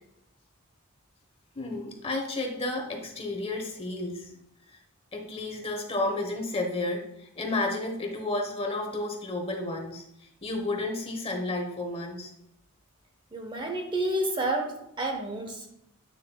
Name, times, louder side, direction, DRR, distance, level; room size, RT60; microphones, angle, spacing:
voice 1, 1.5-4.3 4.7-4.8 5.1-10.0 10.4-12.3, left 2 dB, 25° left, 3 dB, 1.1 m, -32 dB
voice 2, 13.3-15.7, right 1 dB, 20° right, 3 dB, 0.7 m, -30 dB
9.0 x 6.3 x 2.3 m, 0.79 s
head